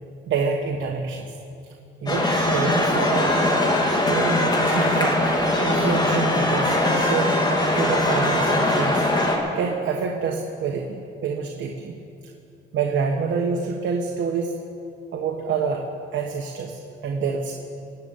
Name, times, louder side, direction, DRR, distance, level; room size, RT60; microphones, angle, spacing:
voice 1, 0.3-1.4 2.0-3.4 4.1-5.2 5.6-7.3 7.7-9.1 9.5-12.0 12.7-14.6 15.1-15.9 16.1-17.5, right 5 dB, 70° right, 2 dB, 1.3 m, -27 dB
sound 1, 2.1-9.4, left 1 dB, 20° left, 2.5 m, -21 dB
20.0 x 6.9 x 8.9 m, 2.6 s
cardioid pair, 90°, 20 cm